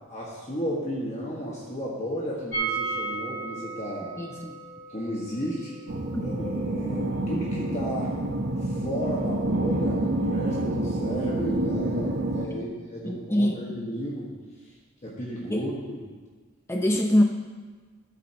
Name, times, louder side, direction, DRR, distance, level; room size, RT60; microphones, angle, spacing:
voice 1, 0.1-4.1 4.9-5.7 6.2-8.1 8.6-14.3 15.0-16.0, equal, 30° left, -5 dB, 1.5 m, -33 dB
sound 1, 2.5-8.3 8.5-8.6 8.9-9.0, right 4 dB, 35° right, 1.8 m, -35 dB
voice 2, 4.2-4.6 6.1-6.2 12.5-12.7 13.0-13.6 15.5-15.6 16.7-17.2, left 1 dB, 10° left, 1 dB, 0.6 m, -24 dB
(GF) Metal wire fence vibrating in the wind, 5.9-12.4, right 1 dB, 55° right, 0.9 m, -28 dB
14.0 x 8.2 x 3.0 m, 1.4 s
head